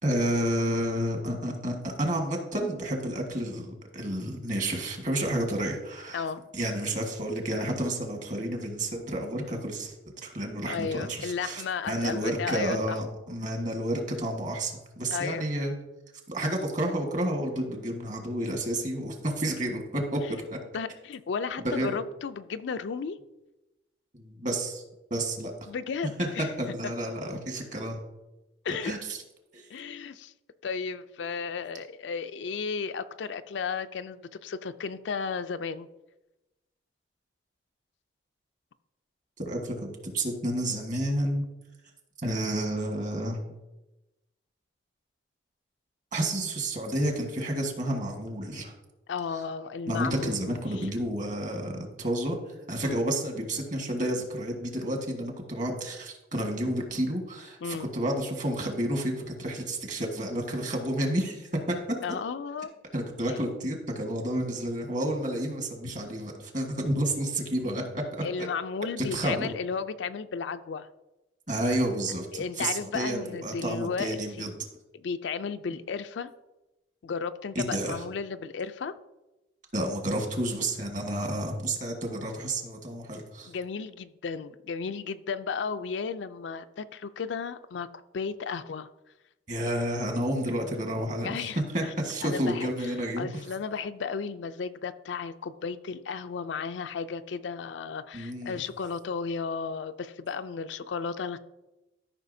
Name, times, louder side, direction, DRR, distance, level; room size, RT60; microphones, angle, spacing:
voice 1, 0.0-6.2 6.5-9.9 10.2-15.7 16.3-20.4 21.6-22.0 24.1-24.8 25.1-25.5 26.6-28.0 28.8-29.0 29.5-29.7 39.4-41.4 42.2-43.4 46.1-48.7 49.9-61.5 62.9-68.2 69.0-69.5 71.5-74.5 77.5-78.0 79.7-83.5 89.5-91.5 91.7-93.4 98.1-98.6, right 1 dB, 45° right, 2 dB, 1.5 m, -30 dB
voice 2, 10.7-13.0 15.1-15.5 20.7-23.2 25.7-26.5 26.8-26.9 28.6-28.9 29.7-30.3 30.6-35.9 49.1-50.9 52.8-53.0 57.6-57.9 62.0-62.7 68.2-70.9 72.3-74.5 74.9-76.3 77.0-79.0 83.5-87.9 88.1-88.9 91.2-91.9 92.2-101.4, left 5 dB, 70° left, 11 dB, 0.4 m, -34 dB
13.5 x 5.6 x 2.7 m, 1.0 s
head